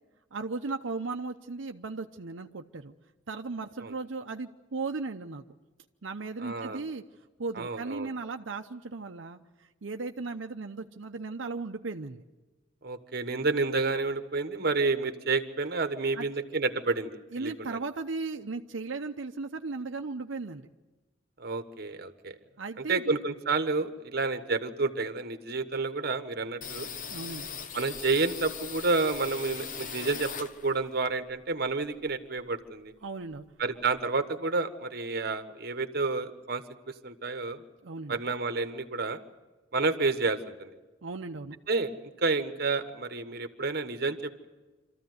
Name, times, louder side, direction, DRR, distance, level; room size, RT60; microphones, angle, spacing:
voice 1, 0.3-2.9 3.3-5.4 6.0-7.0 7.4-9.4 9.8-12.2 16.1-16.3 17.3-20.7 22.6-23.1 27.1-27.5 33.0-33.4 37.8-38.2 41.0-41.6, right 3 dB, 90° right, 4 dB, 0.8 m, -36 dB
voice 2, 6.4-6.8 7.6-8.1 12.8-17.8 21.4-22.3 22.8-26.9 27.7-32.9 33.6-37.6 38.1-39.2 39.7-40.7 41.7-44.5, right 3 dB, 55° right, 9 dB, 1.3 m, -30 dB
sound 1, 26.6-31.0 31.3-32.7 33.0-33.1 33.3-34.0, left 6 dB, 45° left, 1.0 m, -40 dB
26.0 x 14.0 x 9.5 m, 1.2 s
head